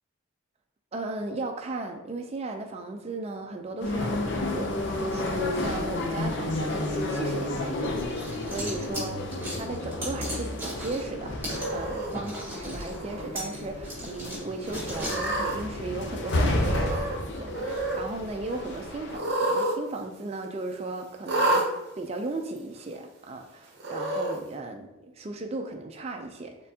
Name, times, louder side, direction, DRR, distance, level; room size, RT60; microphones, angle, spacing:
voice 1, 0.9-4.7 5.0-9.1 9.6-21.6 22.0-26.6, right 2 dB, 30° right, 3 dB, 0.4 m, -36 dB
sound 1, 3.8-19.2, left 2 dB, 55° left, 0.5 m, -31 dB
sound 2, 7.8-11.1 11.4-11.7 12.1-15.3, equal, 10° right, 1.3 m, -37 dB
Cat, 11.5-12.1 12.8-13.3 13.6-13.7 14.8-15.6 16.5-17.2 17.5-18.0 19.1-19.8 20.0-20.1 21.2-21.7 22.6-22.7 23.8-24.4, right 1 dB, 50° right, 0.7 m, -28 dB
4.3 x 3.6 x 2.7 m, 0.97 s
head